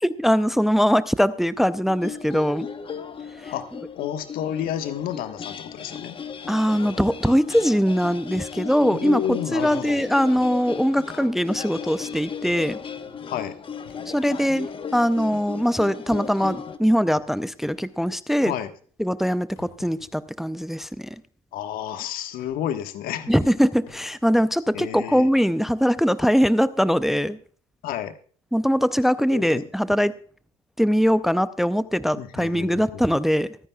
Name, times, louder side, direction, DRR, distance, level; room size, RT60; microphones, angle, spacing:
voice 1, 0.0-2.7 3.4-3.5 6.5-12.8 14.1-18.5 19.0-21.2 23.3-27.4 28.5-30.1 30.8-33.6, equal, ahead, 16 dB, 0.5 m, -22 dB
sound 1, 1.9-16.8, left 6 dB, 30° left, 1.1 m, -36 dB
voice 2, 3.9-6.2 8.9-10.0 13.3-13.6 18.4-18.7 21.5-23.3 24.7-25.3 27.8-28.1 29.3-29.6 32.2-33.2, left 10 dB, 55° left, 9 dB, 1.4 m, -31 dB
sound 2, 6.8-7.0 7.4-7.8 8.6-8.8 9.2-9.7 10.1-10.6 11.1-12.4 12.8-13.3 13.7-14.9 15.6-15.9 16.4-16.6 17.1-17.8 18.5-18.6 19.0-20.2 21.9-22.6 23.6-23.7 23.9-24.4, left 6 dB, 75° left, 3.4 m, -54 dB
24.0 x 10.0 x 2.3 m, 0.43 s
hypercardioid pair, 70°, 17 cm